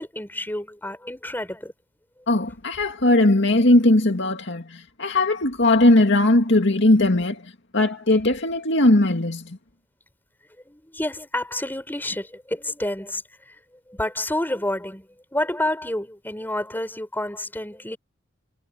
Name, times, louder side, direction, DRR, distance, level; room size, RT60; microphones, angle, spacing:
voice 1, 0.0-1.7 10.7-13.6 13.9-18.0, left 1 dB, 10° left, 5.6 m, -29 dB
voice 2, 2.3-7.4 7.7-9.6, left 1 dB, 65° left, 2.3 m, -19 dB
head